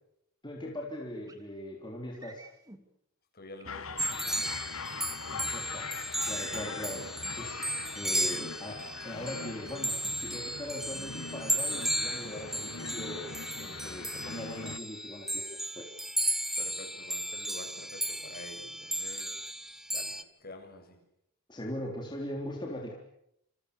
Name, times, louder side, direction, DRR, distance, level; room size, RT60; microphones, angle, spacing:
voice 1, 0.4-2.5 5.3-5.9 6.3-7.1 7.4-7.6 8.0-13.3 13.6-16.0 21.5-22.9, left 1 dB, 20° left, 0 dB, 3.8 m, -40 dB
sound 1, 1.3-1.5 2.1-2.8 3.6-4.2 5.7-6.0 6.5-7.6 8.1-8.5, right 2 dB, 15° right, 2.7 m, -54 dB
voice 2, 3.3-4.7 16.6-19.4 19.9-21.0, left 2 dB, 45° left, 4 dB, 6.9 m, -48 dB
sound 2, 3.6-14.8, left 4 dB, 70° left, 1.7 m, -42 dB
sound 3, 4.0-20.2, right 1 dB, ahead, 1.3 m, -35 dB
28.5 x 27.5 x 7.0 m, 0.77 s
head